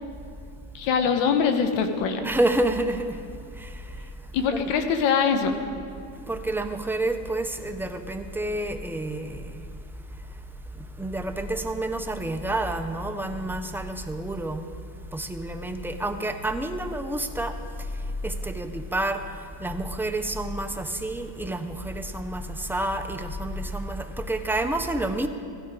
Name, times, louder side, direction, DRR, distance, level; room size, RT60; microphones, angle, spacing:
voice 1, 0.7-2.2 4.3-5.6, left 6 dB, 70° left, 7 dB, 1.3 m, -23 dB
voice 2, 2.2-3.2 3.5-4.1 4.5-4.6 6.3-9.7 10.1-10.4 10.7-14.7 15.1-25.3, right 1 dB, 5° right, 6 dB, 0.8 m, -29 dB
16.0 x 12.5 x 3.8 m, 2.5 s
supercardioid pair, 100°, 47 cm